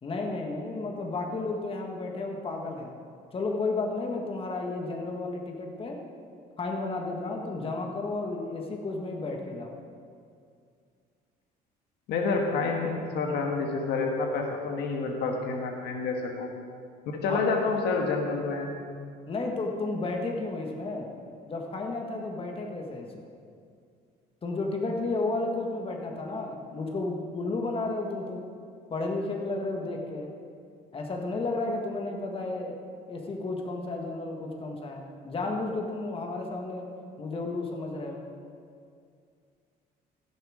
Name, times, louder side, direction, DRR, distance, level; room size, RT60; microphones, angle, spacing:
voice 1, 0.0-2.9 3.3-6.0 6.6-9.7 17.3-17.4 19.3-21.1 21.5-23.3 24.4-28.4 28.9-30.3 30.9-32.8 33.1-36.9 37.2-38.3, left 3 dB, 35° left, 1 dB, 1.5 m, -32 dB
voice 2, 12.1-16.5 17.1-18.7, left 4 dB, 75° left, 1 dB, 1.5 m, -28 dB
15.0 x 7.1 x 4.9 m, 2.3 s
cardioid pair, 110°, 17 cm